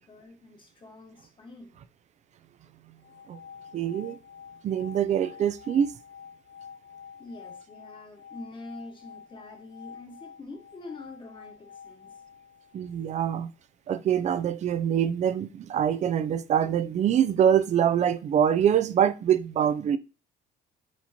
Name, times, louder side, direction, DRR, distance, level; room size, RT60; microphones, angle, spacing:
voice 1, 0.0-1.8 7.2-12.2, left 2 dB, 30° left, 1.3 m, -45 dB
sound 1, 3.0-13.1, left 7 dB, 85° left, 0.6 m, -48 dB
voice 2, 3.7-4.2 4.6-5.9 12.7-13.5 13.9-20.0, right 9 dB, 45° right, 0.4 m, -24 dB
4.4 x 4.1 x 2.8 m
cardioid pair, 110°, 17 cm